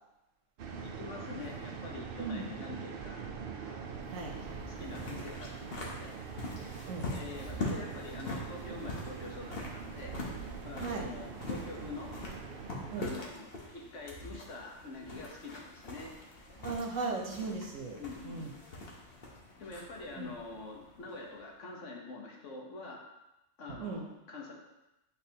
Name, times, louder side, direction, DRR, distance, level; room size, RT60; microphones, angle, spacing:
sound 1, 0.6-13.1, right 6 dB, 55° right, 0.7 m, -43 dB
voice 1, 0.8-3.3 3.6-6.2 7.1-10.2 10.6-12.1 13.0-13.5 13.7-16.1 18.0-18.5 19.6-23.0 23.6-24.5, left 3 dB, 70° left, -1 dB, 1.4 m, -45 dB
sound 2, 3.7-21.4, left 2 dB, 50° left, 1.2 m, -44 dB
voice 2, 16.6-18.5 20.2-20.3 23.8-24.0, right 3 dB, 80° right, 1 dB, 1.3 m, -37 dB
8.6 x 4.0 x 2.9 m, 0.95 s
omnidirectional pair, 1.3 m